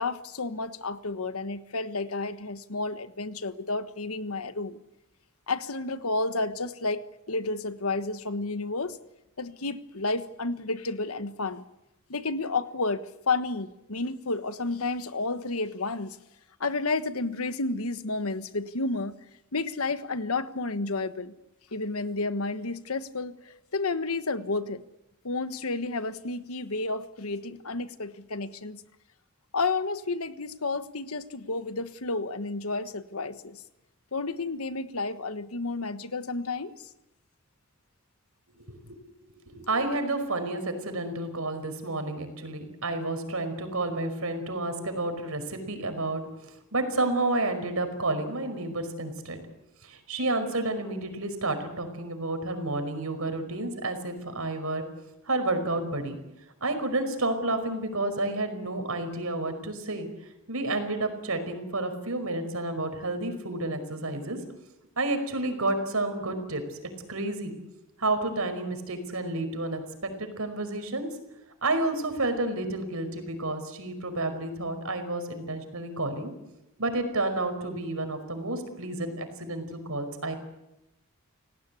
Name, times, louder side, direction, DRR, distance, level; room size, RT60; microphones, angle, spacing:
voice 1, 0.0-4.8 5.5-9.0 9.4-11.6 12.1-16.2 16.6-19.2 19.5-21.3 21.7-24.8 25.2-28.8 29.5-33.6 34.1-36.7, left 3 dB, 80° left, 11 dB, 1.4 m, -31 dB
voice 2, 38.7-39.0 39.5-46.2 46.7-49.4 49.8-54.8 55.2-56.2 56.6-60.1 60.5-64.4 65.0-66.8 67.1-67.6 68.0-69.8 70.2-71.1 71.6-76.3 76.8-80.3, right 2 dB, 80° right, 8 dB, 5.2 m, -30 dB
29.0 x 18.0 x 8.5 m, 0.92 s
head